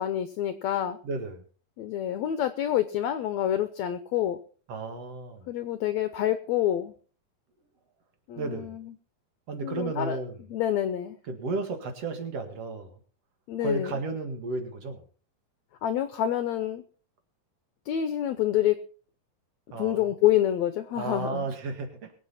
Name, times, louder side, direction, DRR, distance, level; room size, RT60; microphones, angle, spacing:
voice 1, 0.0-1.0 1.8-4.4 5.5-6.9 8.3-8.9 9.6-10.2 10.5-11.2 13.5-13.9 15.8-16.8 17.9-18.8 19.8-21.5, left 11 dB, 75° left, 11 dB, 1.8 m, -27 dB
voice 2, 1.0-1.4 4.7-5.5 8.4-8.8 9.5-10.4 11.3-13.0 13.6-15.0 19.7-20.1 21.0-22.1, right 3 dB, 55° right, 6 dB, 2.8 m, -33 dB
22.5 x 8.3 x 4.2 m, 0.41 s
omnidirectional pair, 3.7 m